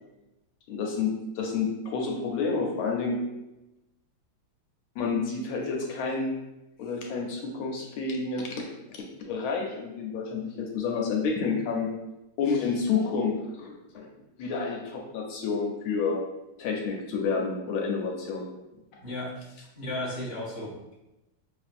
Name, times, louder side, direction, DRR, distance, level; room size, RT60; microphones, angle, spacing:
voice 1, 0.7-3.2 5.0-6.4 6.8-8.6 9.3-11.9 12.4-14.1 14.4-16.2 16.6-18.4, left 5 dB, 80° left, 0 dB, 1.4 m, -29 dB
voice 2, 19.8-21.0, left 1 dB, 30° left, -6 dB, 0.9 m, -34 dB
5.4 x 2.5 x 2.5 m, 0.95 s
omnidirectional pair, 2.3 m